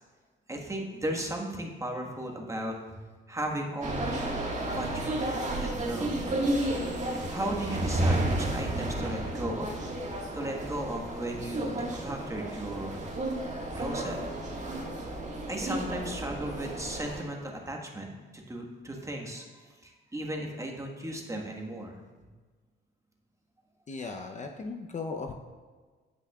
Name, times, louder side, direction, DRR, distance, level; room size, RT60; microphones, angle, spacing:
voice 1, 0.5-6.1 7.3-9.8 10.3-13.0 13.7-14.2 15.5-19.5 19.8-22.0, right 1 dB, 15° right, 1 dB, 1.5 m, -36 dB
sound 1, 3.8-17.2, right 1 dB, 35° right, 1.7 m, -32 dB
voice 2, 23.9-25.3, left 4 dB, 35° left, 3 dB, 0.7 m, -37 dB
16.5 x 5.7 x 2.4 m, 1.4 s
cardioid pair, 90°, 20 cm